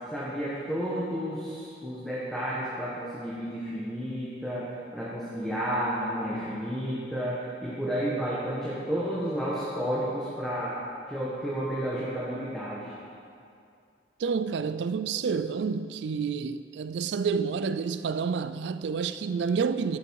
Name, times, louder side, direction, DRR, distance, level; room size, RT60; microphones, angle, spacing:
voice 1, 0.1-10.8 11.1-13.0, equal, ahead, 1.3 m, -31 dB
voice 2, 14.2-20.0, right 5 dB, 75° right, 0.4 m, -29 dB
11.0 x 8.0 x 4.7 m
head